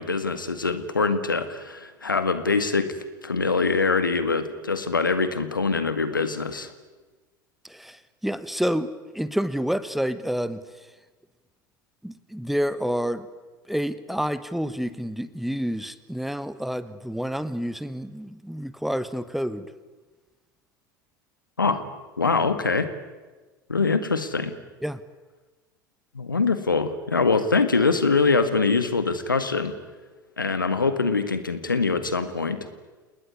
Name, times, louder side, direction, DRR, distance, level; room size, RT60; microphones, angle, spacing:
voice 1, 0.0-2.9 3.2-6.7 21.6-21.9 22.2-22.9 23.7-24.5 26.1-29.7 30.4-32.7, left 4 dB, 80° left, 11 dB, 1.9 m, -23 dB
voice 2, 7.6-10.6 12.0-13.3 13.7-19.7 24.8-25.0, equal, ahead, 15 dB, 1.3 m, -29 dB
29.0 x 20.0 x 9.6 m, 1.3 s
figure-of-eight pair, 75°, 11 cm